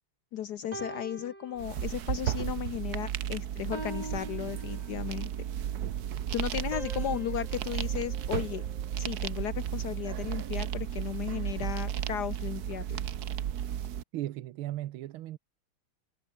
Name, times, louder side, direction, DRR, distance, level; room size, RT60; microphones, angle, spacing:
voice 1, 0.3-5.3 6.3-8.6 9.0-13.0, left 10 dB, 70° left, 1.0 m, -35 dB
sound 1, 0.7-2.3 2.7-3.0 3.7-5.4 6.7-9.1, right 2 dB, 20° right, 2.9 m, -45 dB
sound 2, 1.6-14.0, right 10 dB, 55° right, 1.2 m, -34 dB
voice 2, 14.1-15.4, right 14 dB, 75° right, 1.6 m, -36 dB
omnidirectional pair, 2.4 m